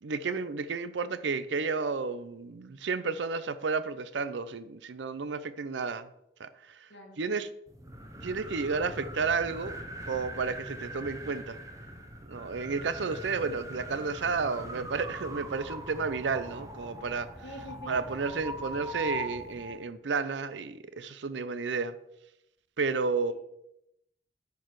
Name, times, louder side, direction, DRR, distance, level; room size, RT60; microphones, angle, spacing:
voice 1, 0.0-6.1 6.4-6.9 7.2-7.5 8.2-9.8 10.1-11.6 12.3-17.3 17.9-22.0 22.8-23.3, right 4 dB, 90° right, 14 dB, 0.6 m, -32 dB
sound 1, 7.7-19.8, right 1 dB, 20° right, 0.9 m, -41 dB
voice 2, 17.4-18.0, equal, 85° left, 1 dB, 1.4 m, -45 dB
10.0 x 4.7 x 4.7 m, 0.82 s
head